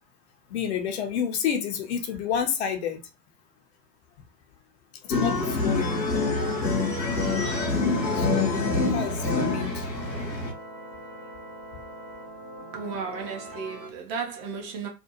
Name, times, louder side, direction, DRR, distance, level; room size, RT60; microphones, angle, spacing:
voice 1, 0.5-3.0 5.0-6.6 7.2-9.9, left 7 dB, 45° left, 0.6 m, -31 dB
sound 1, 5.1-10.5, left 3 dB, 90° left, 0.8 m, -26 dB
sound 2, 6.7-13.9, right 1 dB, 85° right, 0.9 m, -42 dB
voice 2, 12.7-14.9, right 5 dB, 30° right, 0.6 m, -34 dB
2.5 x 2.1 x 2.8 m
figure-of-eight pair, 85°, 49 cm